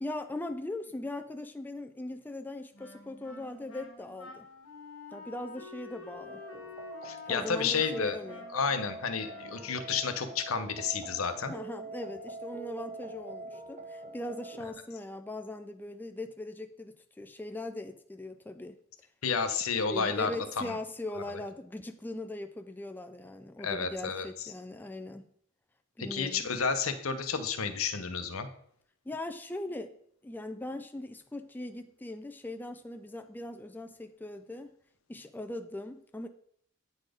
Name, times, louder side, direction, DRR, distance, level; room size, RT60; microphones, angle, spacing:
voice 1, 0.0-4.5 5.1-6.4 7.3-8.5 11.5-18.8 19.8-25.3 26.0-26.5 29.1-29.9 30.2-34.7 35.1-36.3, left 2 dB, 10° left, 7 dB, 0.4 m, -40 dB
Wind instrument woodwind instrument, 2.7-10.1, left 4 dB, 70° left, 1.7 m, -49 dB
sound 1, 6.1-14.7, right 2 dB, 35° right, 0.7 m, -45 dB
voice 2, 7.0-8.2 8.5-11.5 19.2-20.8 23.6-24.5 26.0-28.5, left 5 dB, 85° left, 9 dB, 0.8 m, -31 dB
8.9 x 4.1 x 5.0 m, 0.65 s
head